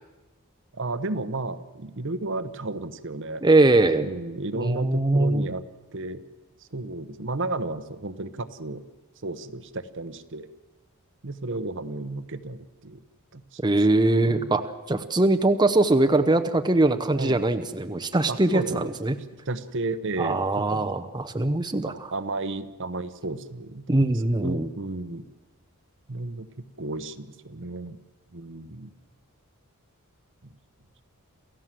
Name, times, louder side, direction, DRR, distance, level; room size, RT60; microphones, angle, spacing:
voice 1, 0.7-3.4 4.0-5.6 5.9-6.2 6.7-8.8 9.2-10.5 11.2-13.0 13.3-13.6 14.2-14.6 17.1-17.4 18.3-18.9 19.5-20.9 21.9-24.1 24.4-25.3 26.1-26.5 26.8-28.0 28.3-28.9, right 2 dB, 60° right, 11 dB, 1.1 m, -33 dB
voice 2, 3.4-4.1 4.5-5.5 13.6-14.6 14.9-19.2 20.2-21.9 23.9-24.7, right 2 dB, 20° right, 7 dB, 0.9 m, -22 dB
28.0 x 15.0 x 7.6 m, 1.2 s
head